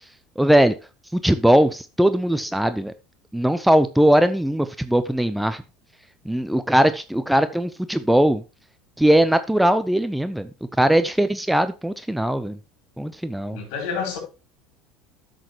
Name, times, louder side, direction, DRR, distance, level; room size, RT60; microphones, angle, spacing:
voice 1, 0.4-0.7 1.1-2.9 3.3-5.6 6.3-8.4 9.0-10.5 10.8-12.6 13.0-13.6, right 1 dB, 5° right, 0.7 m, -19 dB
voice 2, 13.5-14.2, left 6 dB, 65° left, 4.3 m, -28 dB
13.0 x 6.4 x 3.0 m
hypercardioid pair, 75°, 0 cm